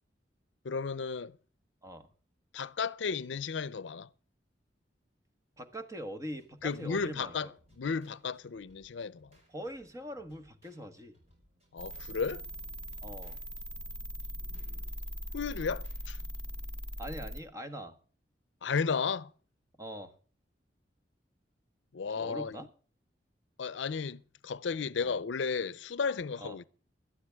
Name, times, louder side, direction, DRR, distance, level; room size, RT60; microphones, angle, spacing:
voice 1, 0.6-1.4 2.5-4.1 6.6-9.3 11.7-12.4 14.5-14.8 15.3-16.2 18.6-19.3 21.9-22.6 23.6-26.6, left 5 dB, 85° left, 0.5 m, -34 dB
voice 2, 5.6-7.4 9.5-11.2 13.0-13.4 17.0-17.9 19.8-20.1 22.1-22.7 25.0-25.2 26.4-26.6, equal, 20° right, 1.3 m, -42 dB
sound 1, 6.3-16.8, equal, 40° right, 5.1 m, -67 dB
sound 2, 11.8-17.4, equal, 5° left, 0.9 m, -40 dB
17.5 x 12.5 x 3.5 m
head